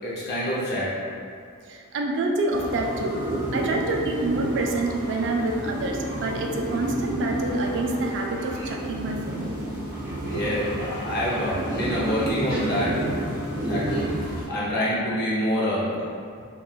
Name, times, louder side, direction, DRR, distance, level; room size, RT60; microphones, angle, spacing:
voice 1, 0.0-0.9 10.3-13.0 13.3-16.0, equal, 45° left, -8 dB, 0.6 m, -27 dB
voice 2, 1.9-3.2 3.5-8.5 8.9-9.5, right 2 dB, 55° right, 1 dB, 0.3 m, -27 dB
sound 1, 2.5-14.5, right 1 dB, 40° right, 0.7 m, -31 dB
3.0 x 2.2 x 2.3 m, 2.3 s
head